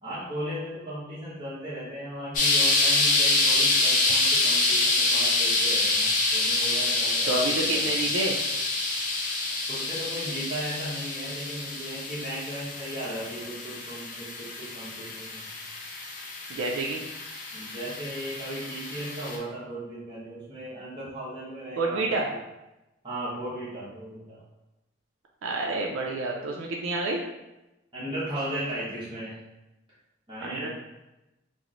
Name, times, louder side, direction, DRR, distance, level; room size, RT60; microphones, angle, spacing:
voice 1, 0.0-7.9 9.7-15.5 17.5-22.3 23.0-24.4 27.9-29.4 30.3-30.7, right 1 dB, 25° right, -10 dB, 0.9 m, -36 dB
sound 1, 2.3-19.4, left 2 dB, 40° left, 0.5 m, -26 dB
voice 2, 7.3-8.4 16.5-17.0 21.8-22.3 25.4-27.2 30.4-30.7, right 2 dB, 90° right, -1 dB, 0.4 m, -28 dB
3.0 x 2.0 x 3.7 m, 0.98 s
head